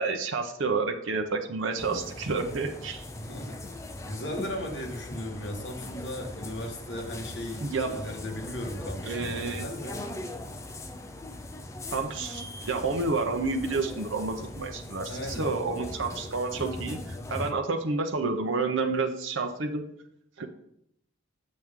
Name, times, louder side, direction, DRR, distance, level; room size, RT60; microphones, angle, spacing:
voice 1, 0.0-3.1 7.6-8.1 9.0-9.7 11.9-19.8 20.4-20.5, right 3 dB, 75° right, 4 dB, 0.7 m, -30 dB
sound 1, 1.8-17.5, left 1 dB, 15° left, 0.5 m, -40 dB
voice 2, 3.1-10.1 15.1-15.5, left 1 dB, 60° left, 1 dB, 1.4 m, -37 dB
7.6 x 6.2 x 3.7 m, 0.75 s
head